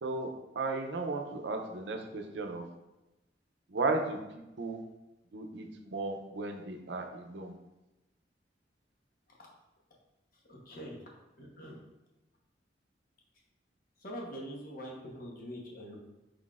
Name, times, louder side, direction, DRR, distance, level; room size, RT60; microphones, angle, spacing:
voice 1, 0.6-2.6 3.7-4.8 5.3-7.5, right 3 dB, 70° right, 4 dB, 0.6 m, -35 dB
voice 2, 10.5-11.0 11.4-11.8 14.0-16.0, equal, 55° left, -2 dB, 1.0 m, -44 dB
4.7 x 3.9 x 2.4 m, 0.99 s
head